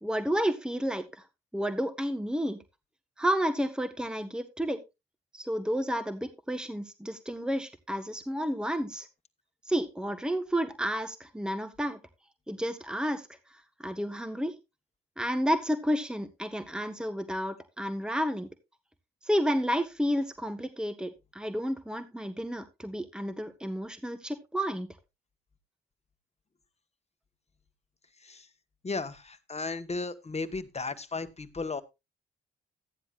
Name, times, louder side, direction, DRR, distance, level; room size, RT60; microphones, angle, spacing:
voice 1, 0.0-1.2 1.5-2.6 3.2-4.8 5.3-9.1 9.7-12.0 12.5-13.3 13.8-14.6 15.2-18.5 19.2-24.9, equal, 5° right, 9 dB, 1.5 m, -31 dB
voice 2, 28.8-31.8, left 3 dB, 35° left, 11 dB, 1.4 m, -35 dB
14.5 x 9.8 x 2.5 m, 0.24 s
supercardioid pair, 50°, 20 cm